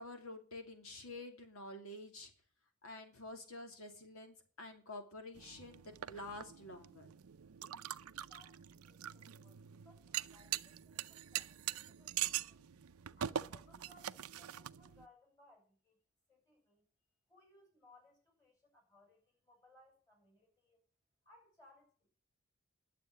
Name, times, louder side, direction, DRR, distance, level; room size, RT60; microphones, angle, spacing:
voice 1, 0.0-2.3 2.8-7.1, left 2 dB, 70° left, 5 dB, 2.6 m, -49 dB
sound 1, 5.3-15.1, right 11 dB, 85° right, 0.6 m, -43 dB
voice 2, 8.2-12.6 13.2-16.0 16.3-16.9 17.3-20.8 21.2-22.1, left 2 dB, 15° left, 2 dB, 6.0 m, -66 dB
11.5 x 7.7 x 9.2 m, 0.41 s
head